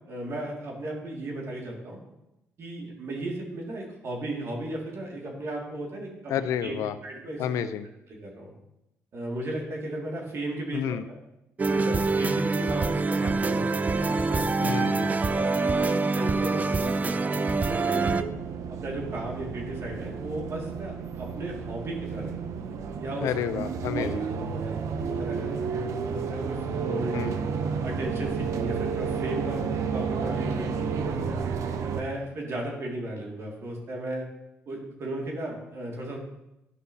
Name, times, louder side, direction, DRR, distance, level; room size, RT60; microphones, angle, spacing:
voice 1, 0.0-2.0 2.6-6.3 6.6-6.7 7.0-7.4 8.1-8.5 9.1-11.2 11.6-14.7 15.3-18.3 18.8-22.5 23.0-23.3 23.9-24.1 24.5-25.6 25.9-27.3 27.8-31.4 31.9-34.3 34.7-36.2, right 1 dB, 55° right, -1 dB, 2.1 m, -35 dB
voice 2, 6.3-6.9 7.4-7.9 10.7-11.0 14.6-15.2 23.2-24.3 27.1-27.4, left 8 dB, 80° left, 12 dB, 0.5 m, -30 dB
sound 1, 11.6-18.2, right 3 dB, 30° right, 0.4 m, -25 dB
sound 2, 18.0-32.0, right 6 dB, 75° right, 0.6 m, -31 dB
11.5 x 5.5 x 2.7 m, 0.90 s
cardioid pair, 75°, 5 cm